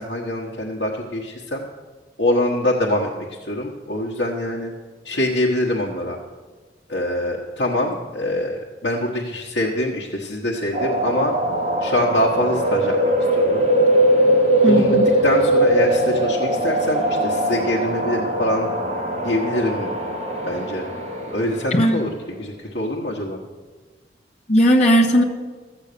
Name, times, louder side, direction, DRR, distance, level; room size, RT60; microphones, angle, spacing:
voice 1, 0.0-1.6 2.2-3.1 3.4-4.7 5.0-6.2 6.9-11.3 11.8-13.7 14.6-15.0 15.2-18.7 19.2-19.9 20.5-20.9 21.3-22.1 22.4-23.4, left 1 dB, 75° left, -3 dB, 1.3 m, -24 dB
sound 1, 10.7-22.0, right 1 dB, 40° right, 2.5 m, -20 dB
voice 2, 14.6-15.1 21.7-22.0 24.5-25.2, equal, 40° left, -1 dB, 1.5 m, -16 dB
13.5 x 8.2 x 6.8 m, 1.4 s
head